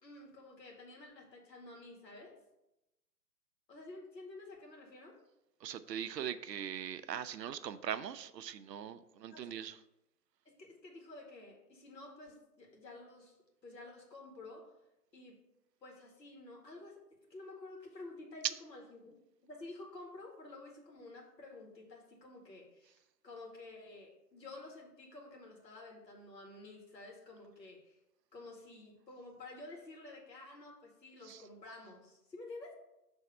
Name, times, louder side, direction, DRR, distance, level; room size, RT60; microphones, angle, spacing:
voice 1, 0.0-2.4 3.7-5.2 9.3-9.5 10.5-13.4 13.6-14.7 15.1-15.4 15.8-17.0 17.3-19.2 19.4-23.0 23.2-28.0 28.3-32.7, left 2 dB, 80° left, 2.1 m, -51 dB
voice 2, 5.6-9.8 18.4-18.5 31.2-31.4, right 9 dB, 75° right, 0.6 m, -40 dB
6.3 x 3.5 x 5.4 m
figure-of-eight pair, 135°, 50 cm